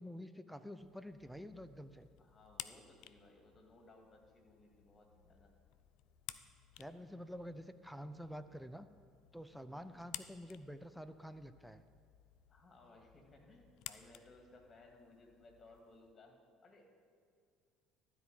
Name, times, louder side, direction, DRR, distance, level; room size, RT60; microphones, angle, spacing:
voice 1, 0.0-2.1 6.8-8.9 9.3-11.8, equal, ahead, 11 dB, 0.6 m, -48 dB
sound 1, 0.8-16.1, left 13 dB, 60° left, 0.4 m, -55 dB
voice 2, 2.2-5.5 9.6-10.1 12.5-16.8, left 2 dB, 30° left, 2 dB, 2.1 m, -62 dB
12.5 x 4.7 x 7.8 m, 2.2 s
hypercardioid pair, 60°, 0 cm